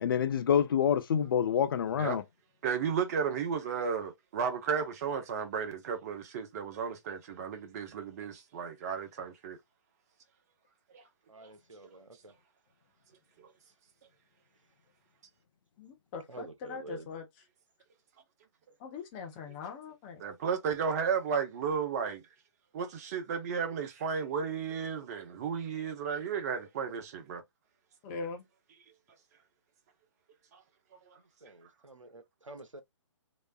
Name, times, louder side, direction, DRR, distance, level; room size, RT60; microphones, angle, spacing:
voice 1, 0.0-2.2, left 8 dB, 45° left, 0.6 m, -27 dB
voice 2, 2.6-9.6 10.9-11.0 13.4-13.5 20.2-22.2 22.7-27.4 30.5-30.6, right 6 dB, 30° right, 0.8 m, -33 dB
voice 3, 11.3-12.3 16.3-17.1 31.4-32.8, right 3 dB, 85° right, 0.8 m, -48 dB
voice 4, 15.8-17.2 18.8-20.2 28.0-28.4, left 5 dB, 25° left, 0.9 m, -41 dB
3.2 x 3.0 x 2.3 m
figure-of-eight pair, 135°, 16 cm